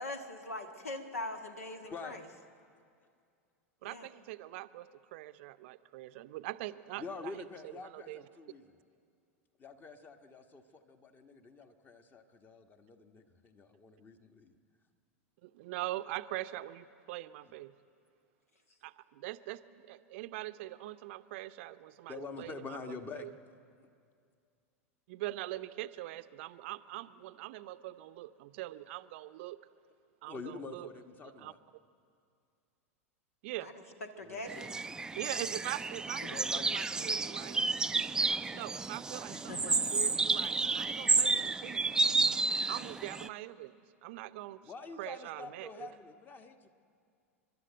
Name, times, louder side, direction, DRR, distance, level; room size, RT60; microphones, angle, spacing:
voice 1, 0.0-2.2 3.8-4.1 33.6-33.8 34.2-34.7 36.2-36.3 39.3-39.9, left 2 dB, 75° left, 6 dB, 1.7 m, -42 dB
voice 2, 3.8-7.3 7.6-8.2 15.4-17.7 18.8-22.8 23.2-23.3 25.1-29.6 30.2-30.9 31.2-31.5 33.4-33.7 35.1-37.6 38.5-42.0 42.7-44.6 45.0-45.9, right 16 dB, 55° right, 13 dB, 0.6 m, -42 dB
voice 3, 7.0-8.8 9.6-14.6 17.4-17.5 22.1-23.3 30.3-31.6 34.2-34.5 36.2-37.1 44.6-46.7, left 4 dB, 25° left, 8 dB, 1.4 m, -46 dB
sound 1, 34.5-43.3, right 3 dB, 10° right, 0.4 m, -31 dB
30.0 x 12.0 x 7.9 m, 2.3 s
figure-of-eight pair, 90°, 8 cm